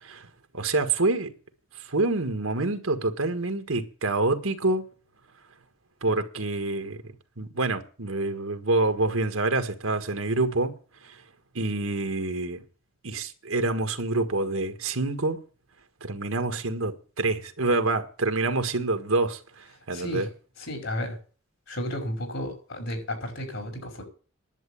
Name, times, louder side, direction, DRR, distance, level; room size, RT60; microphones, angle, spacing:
voice 1, 0.5-1.3 1.9-4.8 6.0-7.0 7.4-10.7 11.0-11.2 11.5-12.6 13.0-15.4 16.0-20.3, right 2 dB, 90° right, 1.7 m, -27 dB
voice 2, 19.9-20.3 20.6-21.2 21.7-24.0, equal, 70° left, 5.2 m, -33 dB
11.0 x 7.8 x 8.6 m
head